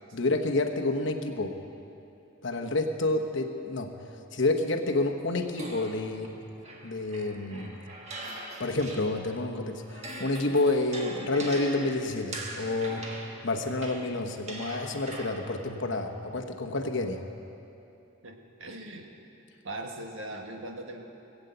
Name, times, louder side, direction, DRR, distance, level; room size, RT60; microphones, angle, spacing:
voice 1, 0.1-1.6 2.4-3.9 4.3-6.3 6.8-7.8 8.6-13.0 13.4-17.2, left 2 dB, 60° left, 4 dB, 1.1 m, -29 dB
sound 1, 5.6-9.4 9.8-15.6, right 1 dB, 30° right, 1.6 m, -42 dB
voice 2, 18.2-19.1 19.6-21.1, right 1 dB, 65° right, 3 dB, 1.6 m, -40 dB
19.5 x 8.2 x 8.1 m, 2.9 s
head